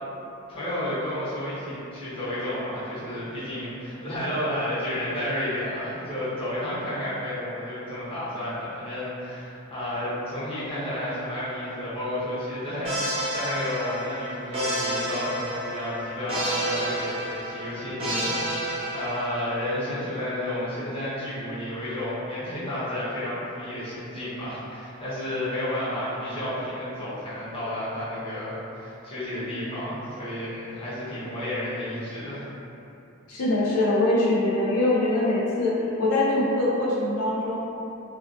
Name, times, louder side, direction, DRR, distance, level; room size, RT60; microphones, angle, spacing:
voice 1, 0.5-18.7 18.9-32.5, left 1 dB, 25° left, -12 dB, 0.8 m, -31 dB
sound 1, 12.8-19.7, right 1 dB, 25° right, 0.4 m, -30 dB
voice 2, 33.3-35.7 36.0-37.6, left 2 dB, 85° left, -6 dB, 0.4 m, -23 dB
2.3 x 2.2 x 2.5 m, 2.8 s
head